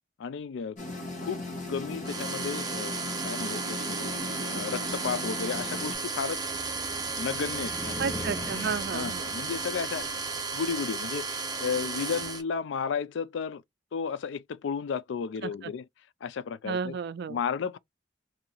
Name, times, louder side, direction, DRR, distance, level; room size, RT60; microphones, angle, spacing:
voice 1, 0.2-0.8 1.2-4.1 4.5-6.4 7.2-8.0 8.9-10.1 10.5-11.3 11.6-13.6 13.9-15.9 16.2-17.0 17.3-17.8, left 6 dB, 65° left, 0.3 m, -33 dB
sound 1, 0.8-6.0, left 2 dB, 40° left, 1.4 m, -37 dB
sound 2, 2.0-12.4, right 4 dB, 20° right, 0.8 m, -34 dB
Car, 4.1-12.4, left 1 dB, 10° left, 0.5 m, -43 dB
voice 2, 8.0-9.3 15.4-15.5 16.6-17.4, right 6 dB, 55° right, 0.3 m, -32 dB
2.8 x 2.6 x 3.9 m
head